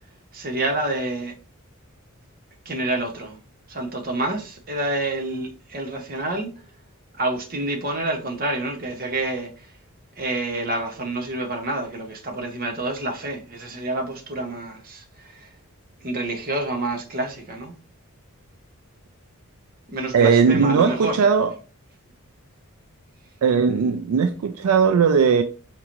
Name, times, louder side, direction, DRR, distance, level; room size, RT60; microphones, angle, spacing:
voice 1, 0.3-1.3 2.7-3.4 3.7-6.5 7.2-9.7 10.2-15.5 16.0-17.7 19.9-21.2, right 2 dB, 40° right, 0.8 m, -28 dB
voice 2, 20.1-21.5 23.4-25.4, right 6 dB, 75° right, 0.3 m, -18 dB
4.7 x 3.0 x 2.5 m
head